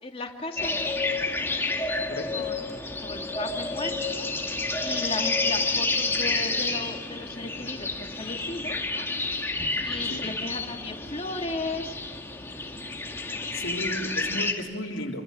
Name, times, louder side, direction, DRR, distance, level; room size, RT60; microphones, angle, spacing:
voice 1, 0.0-0.9 2.3-2.6 3.0-4.3 4.8-9.1 9.5-12.0 13.3-13.5, left 2 dB, 30° left, 2 dB, 2.7 m, -36 dB
sound 1, 0.6-14.5, left 3 dB, 10° left, 2.1 m, -30 dB
voice 2, 2.1-2.5 10.1-10.3 13.5-15.2, left 1 dB, 85° left, -1 dB, 3.4 m, -34 dB
27.5 x 25.5 x 7.8 m, 1.5 s
head